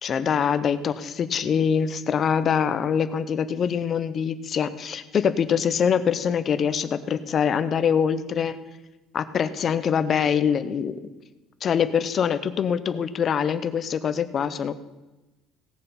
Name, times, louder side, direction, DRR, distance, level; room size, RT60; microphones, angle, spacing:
voice 1, 0.0-8.6 9.1-11.1 11.6-14.8, left 7 dB, 30° left, 12 dB, 0.6 m, -24 dB
17.5 x 6.9 x 5.5 m, 1.1 s
cardioid pair, 175°, 0 cm